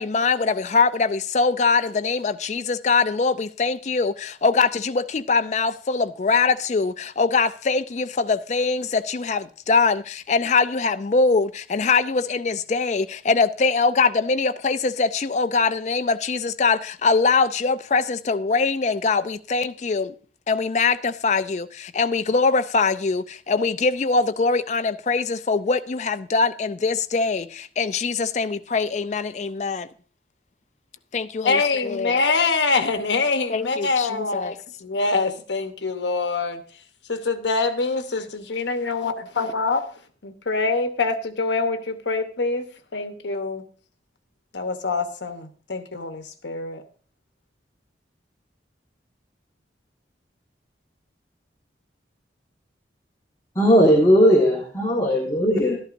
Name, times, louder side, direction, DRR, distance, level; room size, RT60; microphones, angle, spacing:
voice 1, 0.0-20.1 20.5-29.9 31.1-32.2 33.5-34.6, left 4 dB, 40° left, 0.4 m, -22 dB
voice 2, 31.4-34.5 34.8-36.6 37.1-39.8 40.2-42.7 42.9-43.6 44.5-46.8, left 4 dB, 75° left, 1.0 m, -24 dB
voice 3, 53.5-55.8, equal, 20° left, 1.4 m, -17 dB
12.0 x 11.0 x 2.6 m
head